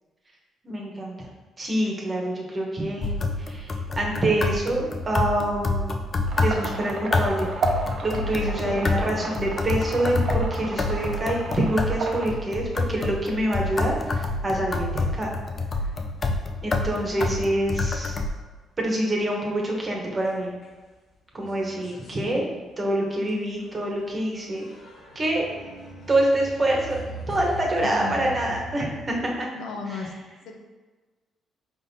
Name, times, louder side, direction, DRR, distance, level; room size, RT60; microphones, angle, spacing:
voice 1, 0.6-1.2 1.6-3.1 3.5-3.7 4.0-6.0 6.4-7.5 8.0-15.3 16.6-18.2 18.8-20.5 21.3-22.4 22.8-24.7 25.1-25.4 26.1-27.0 27.3-29.5, right 1 dB, 30° right, -1 dB, 1.0 m, -26 dB
sound 1, 3.0-18.3, left 3 dB, 35° left, 0.4 m, -28 dB
sound 2, 6.3-12.3, right 3 dB, 60° right, 0.6 m, -33 dB
sound 3, 18.6-18.7 19.0-20.8 21.1-29.2, right 1 dB, 65° left, 1.3 m, -43 dB
voice 2, 22.2-22.5 27.8-28.4 29.5-30.1 30.5-30.6, left 4 dB, 85° left, 2 dB, 0.6 m, -35 dB
5.1 x 3.5 x 2.7 m, 1.3 s
cardioid pair, 90°, 0 cm